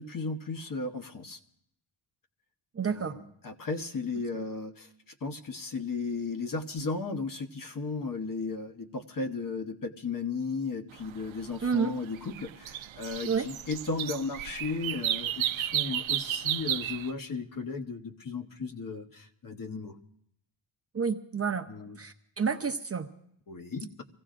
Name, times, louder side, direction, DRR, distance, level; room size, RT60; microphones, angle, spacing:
voice 1, 0.0-1.4 2.8-4.9 5.2-19.9 21.7-22.0 23.5-23.9, left 4 dB, 45° left, 6 dB, 1.1 m, -35 dB
voice 2, 2.7-3.2 11.6-11.9 13.3-13.5 20.9-21.7 22.0-23.1, right 6 dB, 30° right, 6 dB, 0.6 m, -29 dB
sound 1, 10.9-17.1, right 11 dB, 80° right, 0.6 m, -33 dB
26.0 x 16.0 x 2.5 m, 0.72 s
wide cardioid pair, 155°, 46 cm